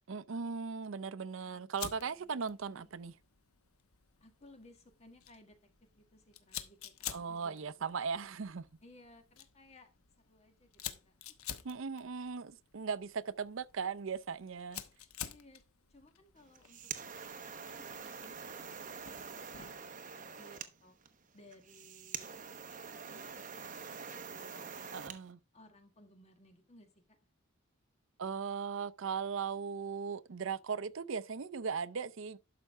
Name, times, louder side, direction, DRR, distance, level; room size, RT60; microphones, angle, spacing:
voice 1, 0.1-3.1 7.1-8.7 11.6-14.8 24.9-25.4 28.2-32.4, right 5 dB, 65° right, 0.5 m, -38 dB
Fire, 1.7-19.9, left 10 dB, 90° left, 1.0 m, -50 dB
voice 2, 1.9-2.9 4.2-5.6 5.9-8.0 8.8-9.9 10.3-11.2 15.2-15.6 15.9-20.9 21.3-22.4 22.9-24.8 25.5-27.2, left 1 dB, 30° left, 1.6 m, -61 dB
sound 1, 16.4-25.2, right 6 dB, 35° right, 1.0 m, -45 dB
12.0 x 5.5 x 3.5 m
head